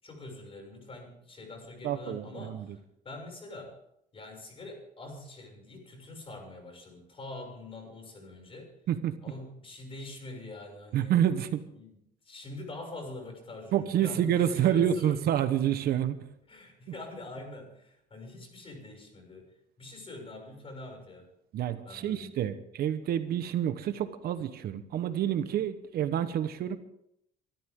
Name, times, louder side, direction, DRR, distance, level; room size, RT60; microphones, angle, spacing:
voice 1, 0.0-3.8 4.1-8.7 9.2-11.2 11.7-12.0 12.2-15.3 16.5-19.5 19.8-21.3 21.8-22.3, left 2 dB, 35° left, 2 dB, 6.7 m, -44 dB
voice 2, 1.8-2.6 8.9-9.2 10.9-11.6 13.7-16.2 21.5-26.8, right 10 dB, 65° right, 11 dB, 1.2 m, -28 dB
24.5 x 13.0 x 3.8 m, 0.74 s
cardioid pair, 110°, 17 cm